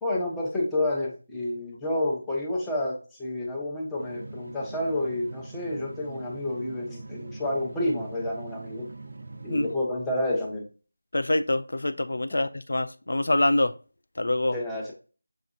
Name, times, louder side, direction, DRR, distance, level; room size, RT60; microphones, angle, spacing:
voice 1, 0.0-8.9 9.4-10.7 14.5-14.9, left 1 dB, 5° left, 0.6 m, -29 dB
sound 1, 4.0-9.8, right 2 dB, 45° right, 0.4 m, -42 dB
voice 2, 11.1-13.7 14.2-14.5, left 1 dB, 60° left, 0.3 m, -25 dB
5.8 x 2.5 x 2.5 m
figure-of-eight pair, 170°, 0 cm